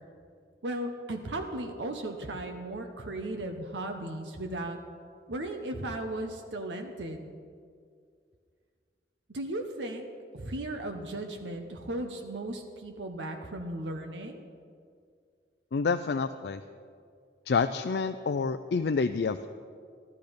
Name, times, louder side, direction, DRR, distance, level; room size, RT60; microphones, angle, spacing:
voice 1, 0.6-4.8 5.3-7.3 9.3-10.1 10.3-14.4, right 1 dB, 85° right, 4 dB, 0.9 m, -36 dB
voice 2, 15.7-16.6 17.5-19.5, left 4 dB, 65° left, 8 dB, 0.4 m, -28 dB
13.5 x 12.0 x 5.2 m, 2.2 s
head